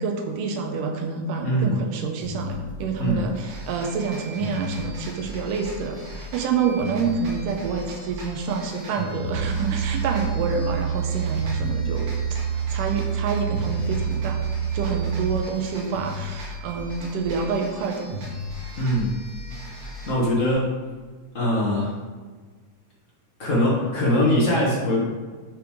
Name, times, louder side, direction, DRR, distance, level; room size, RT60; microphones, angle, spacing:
voice 1, 0.0-12.1 12.7-14.4 14.7-18.2, right 5 dB, 85° right, 3 dB, 2.2 m, -27 dB
voice 2, 1.4-1.7 3.0-3.3 18.8-19.2 19.8-20.7 21.3-21.9 23.4-25.1, left 1 dB, 85° left, -6 dB, 0.6 m, -22 dB
sound 1, 2.2-20.5, left 2 dB, 5° right, 0.7 m, -37 dB
sound 2, 3.5-20.1, right 2 dB, 60° right, 3.0 m, -44 dB
sound 3, 9.2-15.4, right 8 dB, 70° left, 2.0 m, -27 dB
9.5 x 4.9 x 3.6 m, 1.4 s
omnidirectional pair, 3.7 m